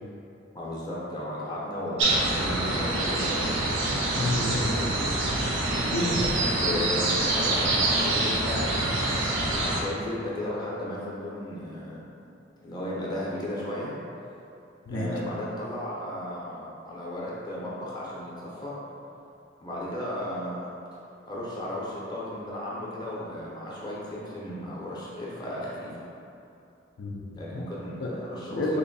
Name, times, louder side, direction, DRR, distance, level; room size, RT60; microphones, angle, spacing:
voice 1, 0.5-3.6 6.1-9.1 9.6-12.0 12.6-14.0 14.9-18.8 19.6-20.7 21.3-26.1 27.4-28.8, left 1 dB, 20° left, -6 dB, 0.6 m, -35 dB
sound 1, 2.0-9.8, right 2 dB, 75° right, 0.5 m, -26 dB
voice 2, 4.1-4.9 5.9-6.3 14.9-15.1 27.0-27.6 28.0-28.1 28.5-28.8, left 1 dB, 75° left, -2 dB, 0.4 m, -29 dB
3.0 x 2.5 x 3.9 m, 2.8 s
head